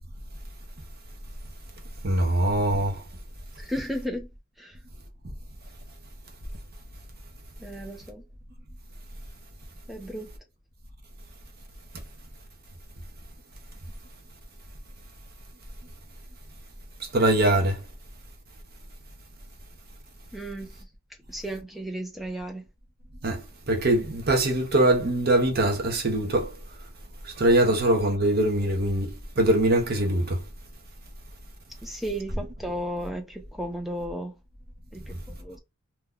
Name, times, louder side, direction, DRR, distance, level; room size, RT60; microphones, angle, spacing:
voice 1, 2.0-3.0 17.1-17.8 23.2-26.5 27.4-30.4, right 1 dB, 45° right, 0.8 m, -22 dB
voice 2, 3.6-4.3 4.6-4.7 7.6-8.2 9.9-10.3 20.3-20.7 21.3-22.6 27.7-27.8 31.8-34.3 34.9-35.6, equal, ahead, 0.6 m, -34 dB
2.9 x 2.2 x 3.6 m
head